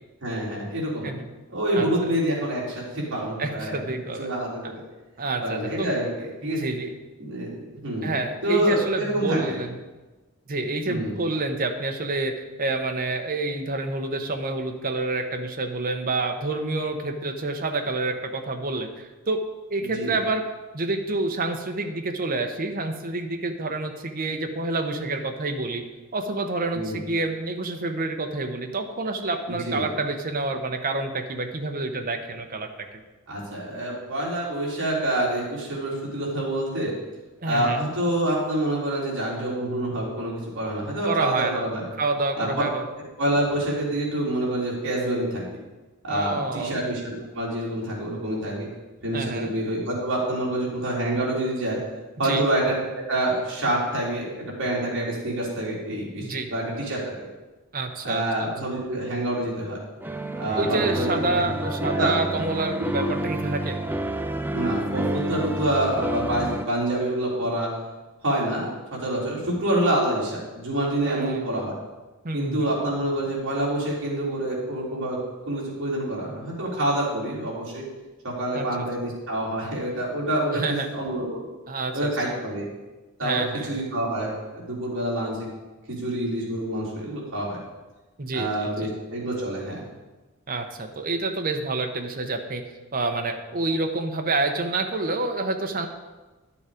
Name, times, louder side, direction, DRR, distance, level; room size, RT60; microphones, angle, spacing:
voice 1, 0.2-1.1 1.5-3.8 4.2-4.8 5.4-6.6 7.2-8.1 8.4-9.6 10.9-11.1 19.9-20.1 26.7-27.0 29.5-29.8 33.3-36.9 37.5-41.8 42.4-42.5 43.2-45.4 46.0-48.7 49.0-51.8 52.2-52.6 53.1-57.3 58.0-59.8 60.4-61.1 61.6-62.1 64.5-67.7 68.2-68.7 69.0-71.7 72.3-75.2 75.5-77.8 78.2-81.5 81.9-82.7 83.2-85.4 85.9-87.6 88.3-89.8, right 1 dB, 60° right, -5 dB, 3.6 m, -27 dB
voice 2, 1.7-2.1 3.4-4.3 4.6-4.7 5.2-5.9 6.4-6.9 8.0-9.8 10.5-19.4 19.7-20.4 20.7-25.8 26.1-32.7 37.4-37.9 41.0-41.7 42.0-42.8 46.1-46.8 49.1-49.5 52.2-52.4 56.2-56.5 57.7-58.5 60.6-63.8 71.0-71.5 72.2-72.7 78.5-78.7 80.5-80.9 81.7-82.4 83.2-83.7 88.2-88.7 90.5-92.6 92.9-95.9, right 2 dB, 40° right, 4 dB, 0.9 m, -28 dB
sound 1, 60.0-66.7, right 1 dB, 10° right, 0.4 m, -29 dB
11.5 x 7.1 x 5.0 m, 1.2 s
head